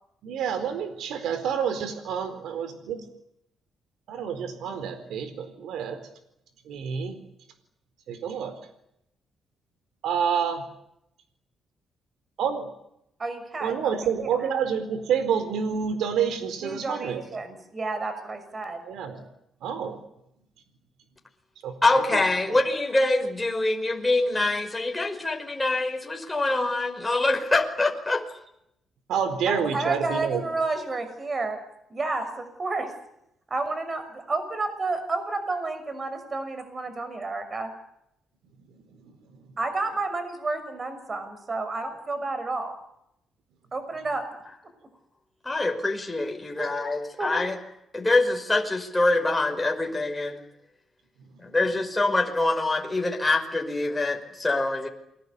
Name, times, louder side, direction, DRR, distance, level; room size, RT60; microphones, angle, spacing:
voice 1, 0.2-3.0 4.1-6.0 6.7-7.2 8.1-8.5 10.0-10.6 12.4-12.7 13.6-17.2 18.9-19.2 19.6-20.0 21.6-21.7 22.1-22.2 22.5-22.6 29.1-30.4, right 7 dB, 80° right, 10 dB, 4.3 m, -28 dB
voice 2, 13.2-13.9 14.2-14.5 16.6-18.8 29.4-31.6 31.9-32.9 33.5-37.7 39.6-42.7 43.7-44.2 46.6-46.7 47.2-47.4, right 3 dB, 30° right, 9 dB, 6.2 m, -30 dB
voice 3, 21.8-28.2 45.5-47.5 47.9-50.4 51.4-54.9, left 2 dB, 15° left, 3 dB, 5.5 m, -25 dB
29.0 x 22.5 x 8.4 m, 0.80 s
cardioid pair, 110°, 0 cm